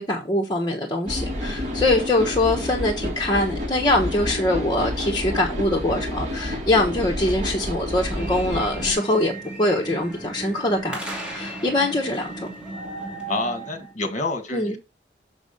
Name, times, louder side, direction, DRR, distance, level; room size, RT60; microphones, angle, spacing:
voice 1, 0.0-9.3 9.6-11.0 11.3-12.5 14.5-14.8, left 1 dB, 25° left, 1.1 m, -23 dB
sound 1, 1.1-8.9, left 1 dB, 40° right, 2.7 m, -29 dB
sound 2, 8.2-13.9, right 2 dB, 5° right, 2.9 m, -35 dB
voice 2, 13.3-14.8, left 2 dB, 40° left, 1.7 m, -28 dB
6.4 x 6.0 x 5.2 m
head